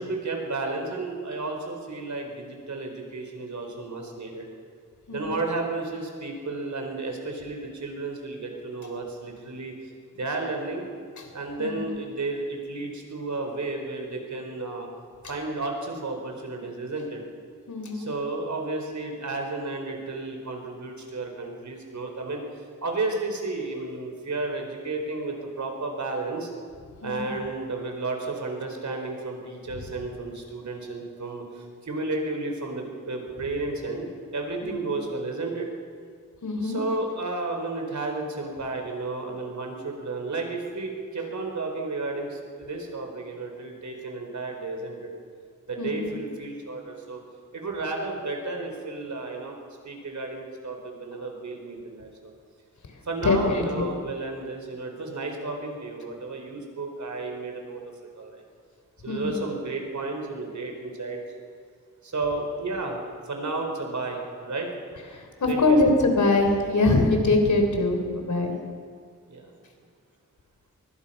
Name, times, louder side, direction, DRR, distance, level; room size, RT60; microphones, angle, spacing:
voice 1, 0.0-4.4 5.1-9.7 10.1-10.8 11.3-14.9 15.3-17.2 17.9-22.4 22.8-26.5 27.0-35.7 36.6-45.1 45.7-47.2 47.5-49.6 49.8-52.3 53.0-57.8 58.1-58.4 59.0-61.2 62.0-64.7 65.5-65.8 69.3-69.5, right 3 dB, 65° right, 2 dB, 4.5 m, -32 dB
voice 2, 5.1-5.4 11.2-11.3 11.6-12.0 17.7-18.1 27.0-27.4 34.6-35.0 36.4-36.8 45.8-46.1 53.2-53.9 59.1-59.4 65.1-68.5, left 2 dB, 65° left, 4 dB, 3.9 m, -23 dB
24.0 x 23.0 x 5.7 m, 2.1 s
wide cardioid pair, 115°, 31 cm